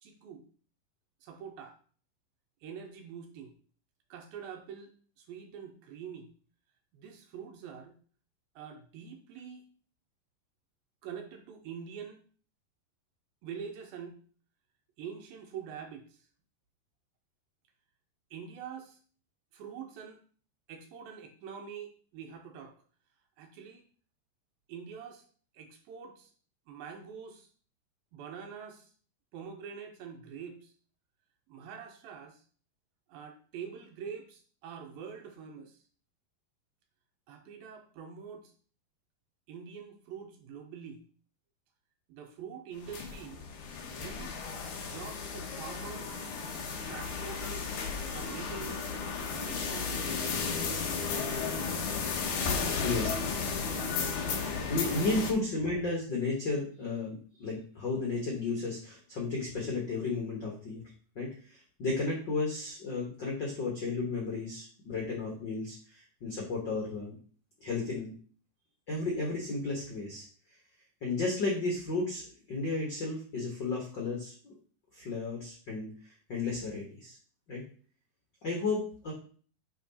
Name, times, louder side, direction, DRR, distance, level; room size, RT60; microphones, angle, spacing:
voice 1, 0.0-0.5 1.2-1.8 2.6-3.6 4.1-6.3 6.9-8.0 8.6-9.7 11.0-12.2 13.4-14.2 15.0-16.3 18.3-19.0 19.5-20.2 20.7-22.8 23.4-23.8 24.7-25.3 25.5-26.3 26.7-27.5 28.1-28.9 29.3-30.7 31.5-32.4 33.1-35.8 37.3-38.5 39.5-41.0 42.1-43.5 43.9-44.4 44.8-46.3 46.9-47.8 48.1-49.0 49.3-50.3 52.4-53.3 53.7-54.5, right 7 dB, 75° right, 4 dB, 2.5 m, -45 dB
sound 1, 42.8-55.3, left 5 dB, 65° left, 2.2 m, -34 dB
voice 2, 54.7-60.8 61.1-67.1 67.6-68.1 68.9-70.2 71.0-74.5 74.9-77.2 77.5-77.6 78.4-79.1, left 3 dB, 90° left, -1 dB, 0.9 m, -33 dB
9.5 x 3.8 x 4.2 m, 0.43 s
omnidirectional pair, 4.7 m